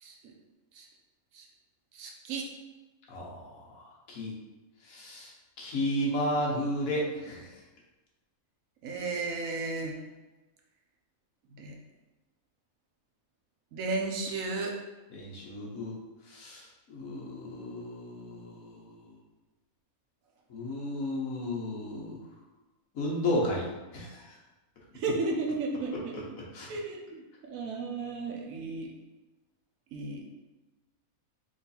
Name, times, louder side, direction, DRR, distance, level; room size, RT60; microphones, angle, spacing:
voice 1, 0.0-0.3 0.7-0.9 1.3-1.5 1.9-2.5 8.8-10.0 11.6-11.8 13.7-14.8 24.9-26.1 26.7-28.9 29.9-30.2, right 3 dB, 75° right, 2 dB, 1.1 m, -34 dB
voice 2, 3.1-4.3 4.8-5.3 5.6-7.5 15.1-15.9 16.3-18.9 20.5-22.2 22.9-23.7 23.9-24.3 26.5-26.7, left 1 dB, 75° left, -3 dB, 1.5 m, -33 dB
3.8 x 3.1 x 4.1 m, 1.1 s
omnidirectional pair, 1.5 m